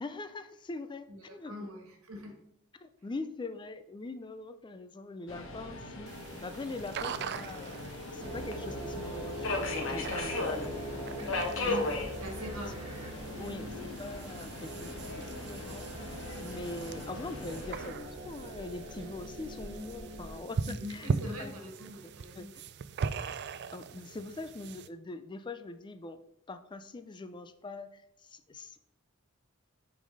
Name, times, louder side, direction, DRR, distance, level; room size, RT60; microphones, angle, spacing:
voice 1, 0.0-1.7 2.8-7.9 8.1-11.0 12.4-12.5 13.4-20.6 20.9-21.5 22.3-22.6 23.2-23.4 23.7-26.2 26.5-28.8, left 2 dB, 20° left, 10 dB, 0.4 m, -43 dB
voice 2, 1.1-2.4 11.5-13.0 20.6-22.5, left 1 dB, 85° right, 2 dB, 1.6 m, -43 dB
Subway metro underground, 5.3-17.9, left 2 dB, 65° left, 1.1 m, -38 dB
sound 1, 6.1-24.9, right 5 dB, 55° right, 0.4 m, -41 dB
sound 2, 8.2-20.4, equal, 30° right, 1.7 m, -42 dB
6.1 x 4.0 x 5.3 m, 0.76 s
head